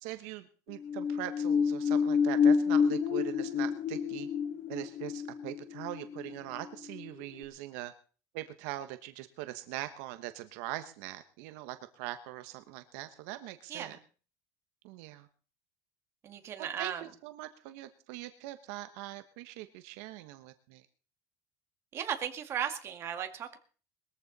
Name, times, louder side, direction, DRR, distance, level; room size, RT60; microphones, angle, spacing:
voice 1, 0.0-4.3 4.7-7.9 8.3-14.0 14.8-15.3 16.6-20.9, right 15 dB, 75° right, 10 dB, 1.1 m, -42 dB
sound 1, 0.7-7.1 7.4-7.5, left 6 dB, 35° left, 1.2 m, -29 dB
voice 2, 16.2-17.0 21.9-23.6, right 9 dB, 30° right, 6 dB, 2.1 m, -36 dB
21.0 x 14.0 x 4.1 m, 0.40 s
cardioid pair, 165°, 8 cm